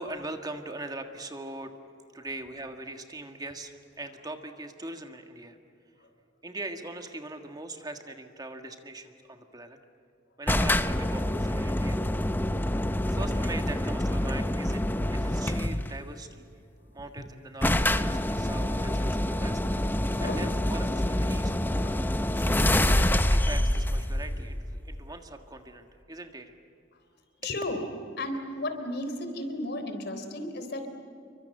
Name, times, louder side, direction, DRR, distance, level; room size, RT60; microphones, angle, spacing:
voice 1, 0.0-1.7 2.1-5.6 6.4-9.8 10.4-12.0 12.7-14.8 15.1-16.5 16.9-19.6 20.2-21.5 22.3-26.6 27.4-27.5, right 2 dB, 20° right, 5 dB, 1.7 m, -41 dB
sound 1, 10.5-16.0 17.0-17.1 17.3-17.4 17.6-25.1, left 1 dB, 10° left, 0.7 m, -26 dB
voice 2, 20.0-20.4 21.8-22.2 24.2-24.3 27.4-27.8 28.2-30.9, left 1 dB, 60° left, 7 dB, 3.7 m, -34 dB
28.5 x 23.5 x 7.9 m, 2.6 s
head